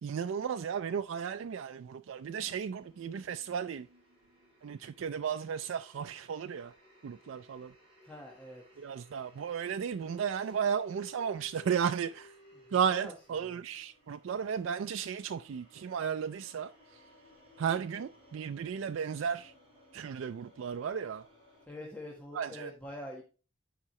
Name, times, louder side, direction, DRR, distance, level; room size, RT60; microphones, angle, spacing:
voice 1, 0.0-3.9 4.6-6.7 7.0-7.7 8.8-12.3 12.7-17.0 17.6-19.5 19.9-21.3 22.3-22.7, right 7 dB, 85° right, 0.4 m, -34 dB
sound 1, 2.1-21.7, left 1 dB, 30° right, 3.4 m, -60 dB
voice 2, 8.0-8.6 12.6-13.1 13.4-13.6 21.6-23.2, left 1 dB, 10° left, 1.2 m, -45 dB
10.0 x 4.7 x 3.1 m
head